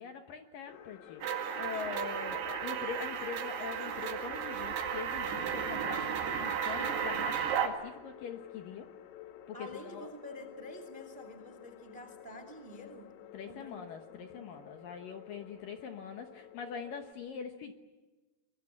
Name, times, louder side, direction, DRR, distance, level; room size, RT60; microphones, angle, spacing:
voice 1, 0.0-8.9 9.5-10.1 13.3-17.7, left 6 dB, 65° left, 5 dB, 2.3 m, -43 dB
sound 1, 0.7-17.1, left 10 dB, 85° left, 3.8 m, -51 dB
sound 2, 1.2-7.7, right 7 dB, 65° right, 4.1 m, -34 dB
voice 2, 9.5-13.1 13.4-14.6, left 1 dB, 20° right, 8 dB, 1.5 m, -48 dB
25.0 x 23.5 x 8.6 m, 1.2 s
omnidirectional pair, 5.2 m